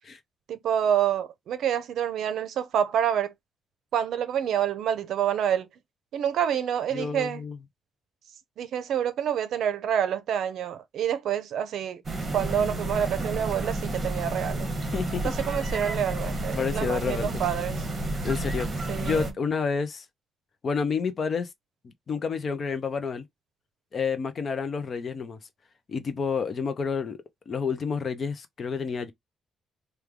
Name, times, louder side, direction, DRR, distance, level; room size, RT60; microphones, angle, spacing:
voice 1, 0.5-3.3 3.9-5.7 6.1-7.4 8.6-12.0 12.3-14.7 15.2-17.8 18.9-19.3, right 9 dB, 60° right, 0.6 m, -27 dB
voice 2, 6.9-7.6 14.9-15.3 16.5-17.4 18.2-20.0 20.6-21.5 21.8-23.2 23.9-25.4 25.9-27.2 27.5-29.1, left 5 dB, 30° left, 0.5 m, -29 dB
sound 1, 12.1-19.3, right 2 dB, 25° right, 1.0 m, -31 dB
3.2 x 2.2 x 3.5 m
cardioid pair, 180°, 0 cm